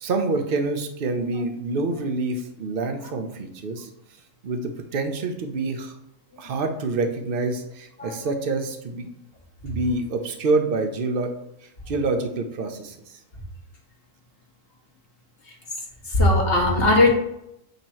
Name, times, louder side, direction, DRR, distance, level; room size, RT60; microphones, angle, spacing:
voice 1, 0.0-3.9 4.4-5.9 6.4-9.1 9.6-11.3 11.9-13.2, right 3 dB, 50° right, 5 dB, 0.9 m, -27 dB
voice 2, 16.1-17.1, left 2 dB, 45° left, 0 dB, 1.4 m, -18 dB
8.1 x 2.9 x 4.4 m, 0.81 s
omnidirectional pair, 1.4 m